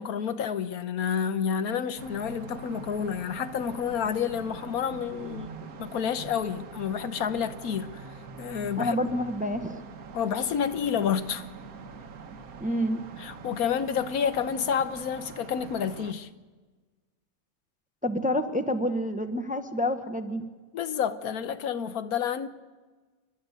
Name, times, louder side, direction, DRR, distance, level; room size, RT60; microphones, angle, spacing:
voice 1, 0.0-5.5 5.8-8.0 8.4-9.0 10.1-11.5 13.2-16.3 20.7-22.5, left 7 dB, 80° left, 1.4 m, -29 dB
sound 1, 2.0-16.1, right 5 dB, 75° right, 1.6 m, -44 dB
voice 2, 8.8-9.8 12.6-13.0 18.0-20.5, left 1 dB, 5° right, 0.9 m, -28 dB
28.5 x 12.0 x 8.1 m
omnidirectional pair, 1.5 m